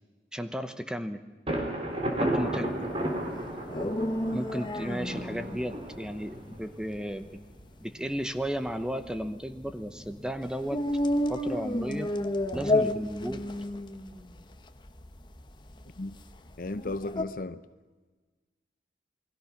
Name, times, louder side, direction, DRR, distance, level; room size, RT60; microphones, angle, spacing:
voice 1, 0.3-1.2 2.2-2.9 4.3-7.4 7.8-10.8 11.3-12.1 12.5-13.5, equal, 5° right, 1.0 m, -34 dB
Thunder, 1.5-7.1, right 1 dB, 35° right, 3.6 m, -33 dB
sound 1, 2.9-17.2, left 1 dB, 25° left, 1.1 m, -33 dB
voice 2, 16.6-17.6, left 2 dB, 50° left, 0.7 m, -35 dB
28.5 x 21.0 x 6.0 m
head